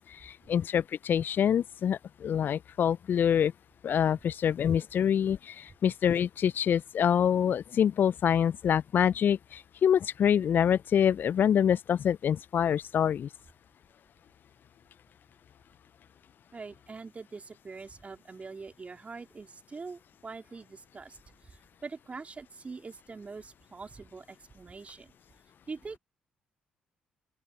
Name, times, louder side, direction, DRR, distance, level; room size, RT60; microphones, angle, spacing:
voice 1, 0.1-3.5 3.8-13.3, left 8 dB, 50° left, 0.7 m, -26 dB
voice 2, 16.5-25.1 25.7-26.0, right 4 dB, 30° right, 3.9 m, -44 dB
open air
figure-of-eight pair, 45°, 4 cm